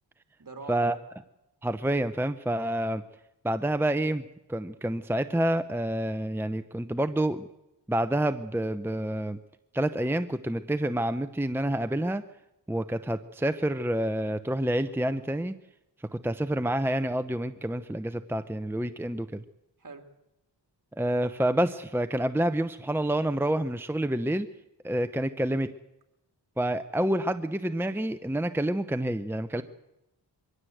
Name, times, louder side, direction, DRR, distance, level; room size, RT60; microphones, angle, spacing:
voice 1, 0.4-1.0 19.8-20.0 29.5-29.6, right 3 dB, 50° right, 6 dB, 3.0 m, -43 dB
voice 2, 1.6-3.0 3.4-4.2 4.5-7.5 7.9-9.4 9.7-12.2 12.7-15.5 16.1-19.4 20.9-24.5 24.8-25.7 26.6-29.6, right 1 dB, 5° right, 10 dB, 0.8 m, -28 dB
23.0 x 16.5 x 8.0 m, 0.91 s
wide cardioid pair, 65°, 43 cm